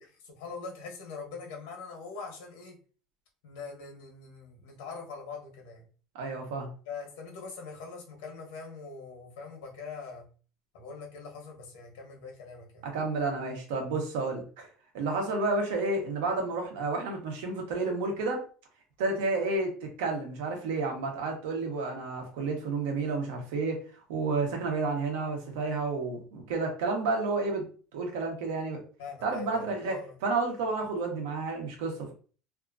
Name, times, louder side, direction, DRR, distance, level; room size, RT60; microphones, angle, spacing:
voice 1, 0.2-2.8 3.4-5.9 6.8-10.2 10.7-12.9 29.0-30.2, left 4 dB, 90° left, 1 dB, 1.0 m, -43 dB
voice 2, 6.1-6.7 12.9-14.7 14.9-18.4 19.0-23.8 24.1-27.6 27.9-28.8 29.2-32.1, right 3 dB, 85° right, 2 dB, 0.9 m, -31 dB
2.8 x 2.5 x 2.4 m, 0.40 s
cardioid pair, 145°, 0 cm